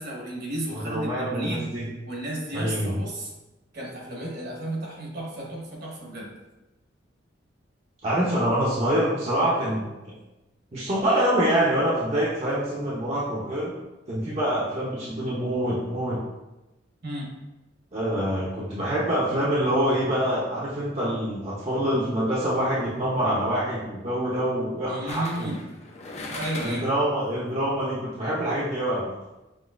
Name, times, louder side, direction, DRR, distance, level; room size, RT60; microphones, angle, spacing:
voice 1, 0.0-1.7 2.1-3.3 3.7-6.3 17.0-17.3 24.9-25.6 26.3-26.8, right 1 dB, 60° right, -2 dB, 1.2 m, -33 dB
voice 2, 0.7-1.9 2.5-3.0 8.0-9.8 10.7-13.7 14.1-16.2 17.9-25.5 26.6-29.0, right 1 dB, 35° right, -7 dB, 0.7 m, -25 dB
sound 1, 22.4-22.7 25.1-27.0 27.4-27.5, left 2 dB, 35° left, 0.6 m, -38 dB
6.0 x 2.7 x 2.5 m, 1.0 s
head